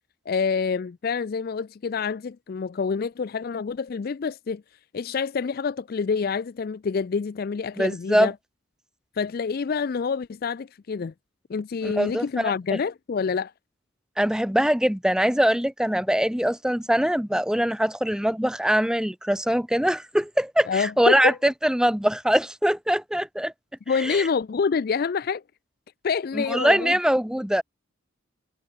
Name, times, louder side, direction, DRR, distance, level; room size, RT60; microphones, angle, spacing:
voice 1, 0.3-4.6 4.9-8.3 9.2-11.1 11.5-13.5 20.7-21.4 23.9-25.4 26.0-27.0, left 5 dB, 45° left, 0.3 m, -27 dB
voice 2, 7.8-8.3 11.8-12.8 14.2-23.5 24.0-24.3 26.3-27.6, equal, 5° right, 0.9 m, -23 dB
head